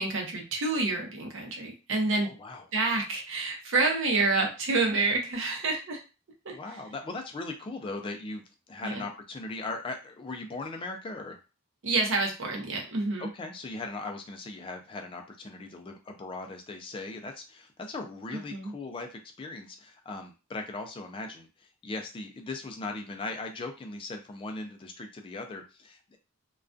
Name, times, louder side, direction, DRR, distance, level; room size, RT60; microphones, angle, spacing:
voice 1, 0.0-2.3 2.7-6.0 6.5-6.6 8.8-9.0 11.8-13.3 18.3-18.7, right 3 dB, 60° right, 2 dB, 0.6 m, -28 dB
voice 2, 2.2-2.7 6.5-8.4 8.7-11.4 13.2-26.2, left 3 dB, 25° left, 4 dB, 0.3 m, -39 dB
2.3 x 2.2 x 2.5 m, 0.31 s
head